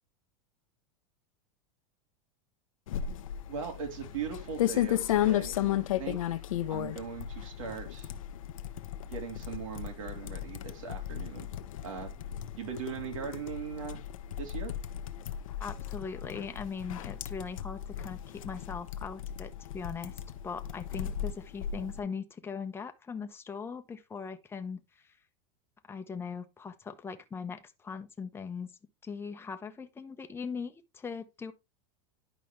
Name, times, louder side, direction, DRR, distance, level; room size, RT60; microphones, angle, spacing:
sound 1, 2.9-22.0, left 11 dB, 90° left, 0.9 m, -35 dB
voice 1, 3.5-6.4 6.7-8.1 9.1-11.5 11.8-12.2 12.6-14.0 14.4-14.7, right 6 dB, 80° right, 3.7 m, -39 dB
voice 2, 15.6-25.0 25.9-28.7 29.0-31.5, left 5 dB, 15° left, 1.0 m, -40 dB
11.0 x 5.2 x 3.2 m
supercardioid pair, 125°, 17 cm